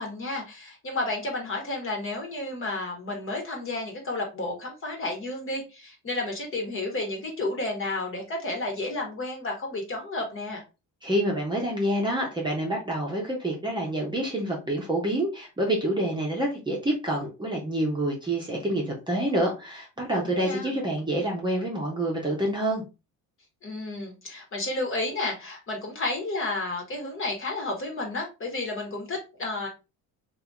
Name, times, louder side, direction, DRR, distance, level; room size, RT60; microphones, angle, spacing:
voice 1, 0.0-10.6 20.1-20.8 23.6-29.7, left 2 dB, 35° left, 1 dB, 1.5 m, -32 dB
voice 2, 11.0-22.8, right 1 dB, 10° right, -2 dB, 1.0 m, -27 dB
2.8 x 2.8 x 3.6 m, 0.28 s
cardioid pair, 115°, 37 cm